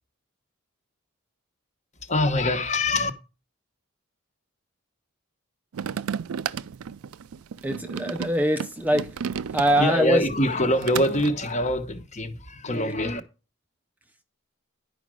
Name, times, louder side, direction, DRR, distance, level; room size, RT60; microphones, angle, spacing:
voice 1, 2.0-3.1 9.7-13.2, left 1 dB, 35° left, 1.1 m, -24 dB
sound 1, 5.7-10.0 10.4-11.3, right 7 dB, 85° right, 0.4 m, -33 dB
voice 2, 7.6-9.1 9.5-10.2, equal, 10° right, 0.5 m, -23 dB
11.0 x 5.1 x 6.2 m
head